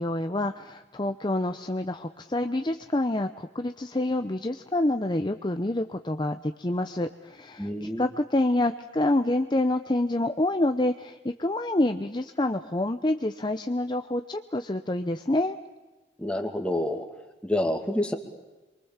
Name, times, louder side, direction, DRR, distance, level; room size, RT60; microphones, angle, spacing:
voice 1, 0.0-15.6, left 1 dB, 25° left, 7 dB, 0.8 m, -27 dB
voice 2, 7.6-8.0 16.2-17.0 17.4-18.1, left 1 dB, 5° left, 3 dB, 2.5 m, -28 dB
28.0 x 23.5 x 7.4 m, 1.1 s
head